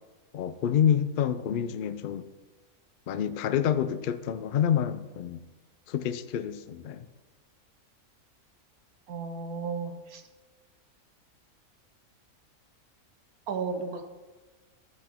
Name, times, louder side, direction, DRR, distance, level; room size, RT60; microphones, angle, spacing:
voice 1, 0.3-2.3 3.1-5.4 5.9-7.1, left 9 dB, 70° left, 12 dB, 0.5 m, -28 dB
voice 2, 9.1-10.2 13.5-14.0, right 5 dB, 85° right, 7 dB, 1.5 m, -34 dB
13.0 x 8.0 x 3.6 m, 1.3 s
omnidirectional pair, 1.5 m